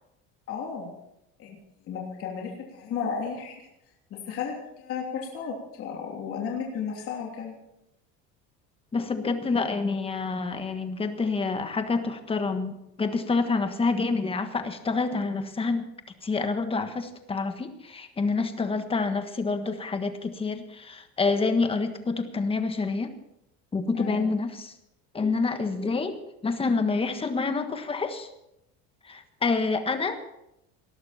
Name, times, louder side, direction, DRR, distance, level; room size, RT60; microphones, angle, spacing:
voice 1, 0.5-0.9 1.4-1.6 1.9-3.7 4.1-7.5 23.9-24.3, left 6 dB, 50° left, -1 dB, 3.0 m, -34 dB
voice 2, 8.9-15.9 16.2-23.1 23.7-24.7 25.1-26.2 26.4-28.3 29.0-30.2, left 4 dB, 20° left, 8 dB, 1.5 m, -27 dB
19.0 x 12.5 x 4.3 m, 0.85 s
cardioid pair, 130°, 30 cm